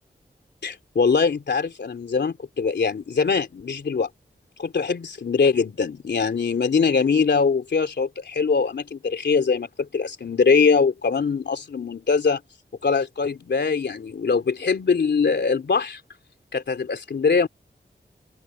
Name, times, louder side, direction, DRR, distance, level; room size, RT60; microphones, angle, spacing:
voice 1, 0.6-4.1 4.6-12.4 12.8-16.0 16.5-17.5, left 5 dB, 80° left, 3.2 m, -22 dB
wide cardioid pair, 85°, 18 cm